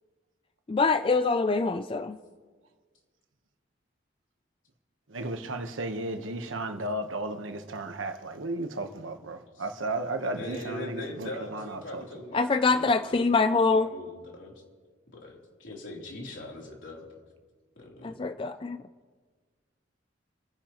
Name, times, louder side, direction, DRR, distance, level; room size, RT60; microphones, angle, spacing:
voice 1, 0.7-2.2 12.3-13.9 18.0-18.8, left 4 dB, 25° left, 0.3 m, -24 dB
voice 2, 5.1-12.0, right 2 dB, 85° right, 1.2 m, -34 dB
voice 3, 10.2-14.5 15.1-17.1 17.8-18.2, left 2 dB, 75° left, 3.4 m, -41 dB
29.5 x 10.0 x 3.1 m
head